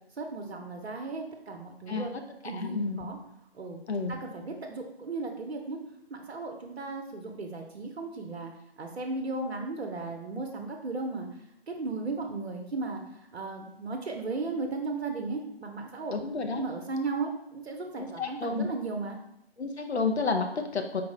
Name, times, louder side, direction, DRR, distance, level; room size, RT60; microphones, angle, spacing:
voice 1, 0.2-2.1 2.4-3.2 3.5-5.8 6.1-8.5 8.8-11.3 11.7-13.0 13.3-16.2 16.6-19.2, right 3 dB, 80° right, 3 dB, 0.6 m, -35 dB
voice 2, 1.9-2.2 2.5-3.1 3.9-4.2 16.1-16.6 18.0-18.7 19.6-21.0, left 4 dB, 85° left, 5 dB, 0.6 m, -30 dB
4.6 x 2.0 x 3.6 m, 0.77 s
figure-of-eight pair, 150°, 32 cm